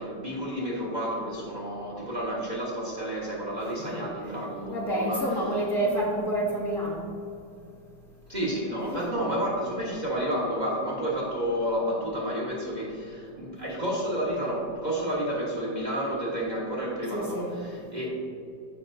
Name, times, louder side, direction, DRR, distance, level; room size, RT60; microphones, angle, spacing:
voice 1, 0.0-5.3 8.3-18.1, equal, 30° right, -4 dB, 1.3 m, -30 dB
voice 2, 4.7-7.1 8.9-9.1 17.1-17.5, right 1 dB, 50° left, -5 dB, 1.4 m, -28 dB
15.0 x 5.2 x 2.7 m, 2.7 s
omnidirectional pair, 1.8 m